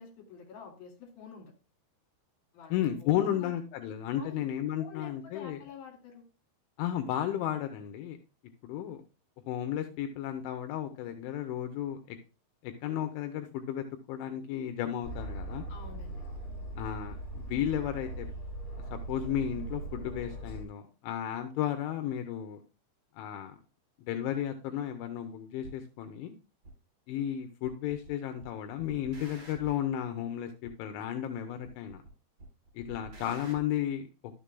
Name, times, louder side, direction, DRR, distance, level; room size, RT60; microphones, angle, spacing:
voice 1, 0.0-1.5 2.5-2.8 3.0-3.5 4.1-4.5 4.8-6.3 15.7-16.3, left 6 dB, 60° left, -1 dB, 3.8 m, -47 dB
voice 2, 2.7-5.6 6.8-8.2 8.6-9.0 9.5-12.2 12.6-15.6 16.8-18.3 18.9-22.6 23.2-23.6 24.1-26.3 27.1-32.0 32.7-34.4, left 10 dB, 85° left, 6 dB, 3.1 m, -33 dB
Aircraft, 15.0-20.6, right 2 dB, 45° left, 2.4 m, -40 dB
sound 1, 25.6-25.8 26.6-26.7 27.6-28.1 28.4-29.9 30.6-30.7 31.6-32.1 32.4-33.6, right 2 dB, 30° right, 4.5 m, -48 dB
12.5 x 6.7 x 2.2 m, 0.32 s
omnidirectional pair, 5.4 m